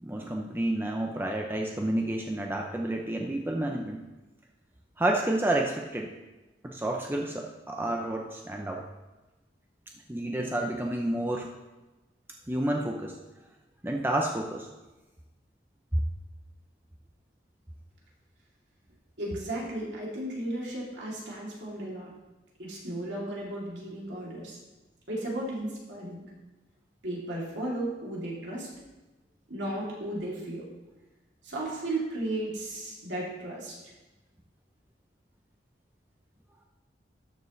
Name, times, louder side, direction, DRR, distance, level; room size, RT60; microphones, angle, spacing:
voice 1, 0.0-4.0 5.0-6.1 6.6-8.9 10.1-11.5 12.5-13.2 13.8-14.7 15.9-16.0, right 1 dB, 10° right, 1 dB, 0.6 m, -30 dB
voice 2, 19.2-22.1 22.6-24.6 25.1-26.3 27.0-28.7 29.5-30.6 31.4-33.8, right 1 dB, 75° right, -5 dB, 3.0 m, -35 dB
13.0 x 7.1 x 3.2 m, 1.1 s
head